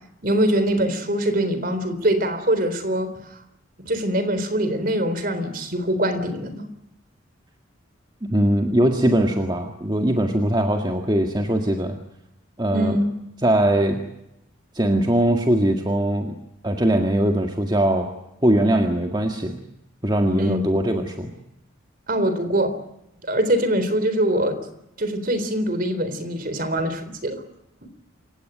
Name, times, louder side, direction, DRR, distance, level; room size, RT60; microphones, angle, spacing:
voice 1, 0.2-3.4 3.9-6.7 12.7-13.1 20.4-20.6 22.1-22.8 23.2-24.7 25.0-27.4 27.8-27.9, right 1 dB, 45° right, 11 dB, 3.8 m, -23 dB
voice 2, 8.2-12.0 12.6-13.0 13.4-14.0 14.7-16.3 16.6-18.1 18.4-19.6 20.0-21.3, right 1 dB, 20° right, 3 dB, 1.8 m, -21 dB
28.0 x 17.0 x 9.2 m, 0.85 s
head